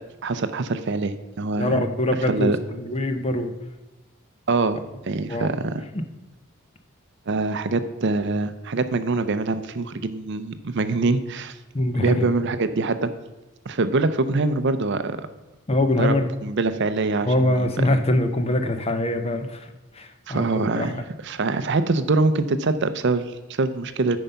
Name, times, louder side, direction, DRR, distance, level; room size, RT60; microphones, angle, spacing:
voice 1, 0.2-1.8 2.2-2.6 4.5-5.8 7.3-11.6 11.9-13.1 13.7-15.2 16.0-16.2 16.4-17.3 17.6-18.0 20.3-24.2, right 3 dB, 55° right, 12 dB, 0.5 m, -24 dB
voice 2, 1.6-3.5 5.3-5.5 11.7-12.3 15.7-16.3 17.2-20.9, left 1 dB, 25° left, 7 dB, 0.7 m, -23 dB
8.9 x 5.4 x 5.7 m, 1.1 s
head